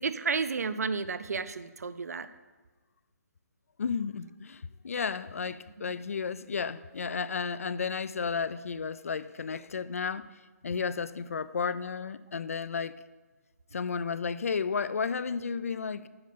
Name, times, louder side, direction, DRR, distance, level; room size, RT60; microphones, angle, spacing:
voice 1, 0.0-2.3, right 5 dB, 65° right, 0.6 m, -32 dB
voice 2, 3.8-10.3 10.6-13.0 13.7-16.1, left 5 dB, 55° left, 0.4 m, -33 dB
9.5 x 5.2 x 6.7 m
hypercardioid pair, 180°, 9 cm